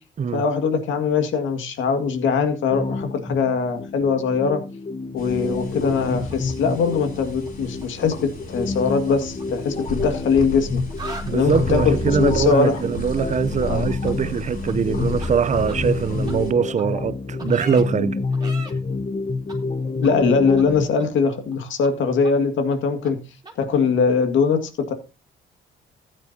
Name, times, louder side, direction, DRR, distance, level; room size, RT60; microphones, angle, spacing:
voice 1, 0.3-4.6 5.1-12.8 13.6-13.9 20.0-23.2 23.6-24.9, left 5 dB, 75° left, 2.0 m, -21 dB
sound 1, 2.7-20.9, left 3 dB, 30° left, 0.8 m, -29 dB
sound 2, 5.2-16.5, left 2 dB, 45° left, 4.2 m, -32 dB
Angry chicken imitations, 6.0-7.5 7.8-8.0 9.1-10.6 10.9-11.3 14.0-14.1 14.7-14.8 15.2-15.3 15.7-15.8 16.3-16.4 16.8-16.9 17.4-17.8 18.3-18.7 19.5-19.6 20.0-20.1 20.6-20.7 21.0-21.6 21.8-21.9 22.2-22.3 22.7-22.8 23.0-23.1 23.4-23.5, right 3 dB, 20° right, 3.3 m, -39 dB
voice 2, 11.3-18.2, right 7 dB, 35° right, 0.6 m, -22 dB
14.5 x 9.6 x 2.8 m
cardioid pair, 90°, 20 cm